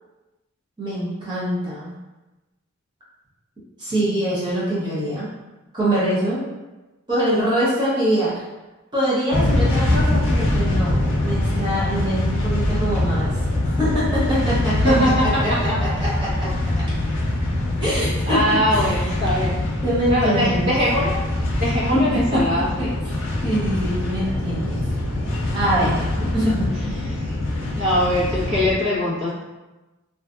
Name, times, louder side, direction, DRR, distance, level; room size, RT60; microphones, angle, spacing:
voice 1, 0.8-1.9 3.8-5.3 5.7-6.5 7.1-8.4 8.9-13.3 13.6-14.7 15.4-15.5 15.8-16.3 16.9-17.0 17.8-19.1 19.8-20.7 21.9-22.9 23.4-24.8 25.5-26.0 26.3-26.9, right 1 dB, 20° right, -9 dB, 0.7 m, -24 dB
sound 1, 9.3-28.7, left 1 dB, 60° left, 0.5 m, -23 dB
voice 2, 14.8-15.8 18.3-19.6 20.1-21.2 21.6-22.9 27.7-29.3, equal, 50° right, -9 dB, 1.1 m, -21 dB
2.5 x 2.4 x 2.3 m, 1.1 s
head